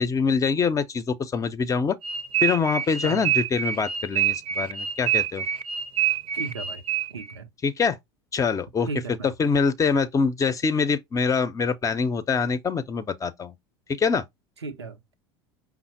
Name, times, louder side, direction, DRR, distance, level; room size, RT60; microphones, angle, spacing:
voice 1, 0.0-2.0 2.4-5.4 7.6-8.0 8.3-8.9 9.4-13.5 14.0-14.2, left 5 dB, 25° left, 0.6 m, -24 dB
sound 1, 2.0-7.3, right 9 dB, 45° right, 0.6 m, -26 dB
voice 2, 6.3-6.8 7.1-7.5 8.8-9.3 14.6-15.1, right 3 dB, 90° right, 0.6 m, -35 dB
5.5 x 2.0 x 4.3 m
hypercardioid pair, 75°, 14 cm